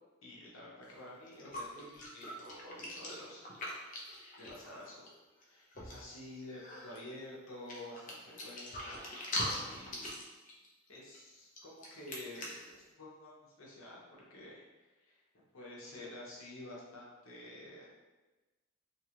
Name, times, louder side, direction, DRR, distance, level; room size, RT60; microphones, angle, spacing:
voice 1, 0.2-3.4 4.4-5.1 5.4-9.1 9.5-10.2 10.9-14.0 14.3-14.6 15.1-15.2 15.5-17.9, left 1 dB, 65° left, -5 dB, 0.8 m, -50 dB
sound 1, 0.8-0.9 1.3-5.1 5.4-5.5 5.7-6.1 6.5-7.1 7.7-12.7, left 1 dB, 40° left, 0.5 m, -42 dB
2.9 x 2.3 x 2.9 m, 1.2 s
head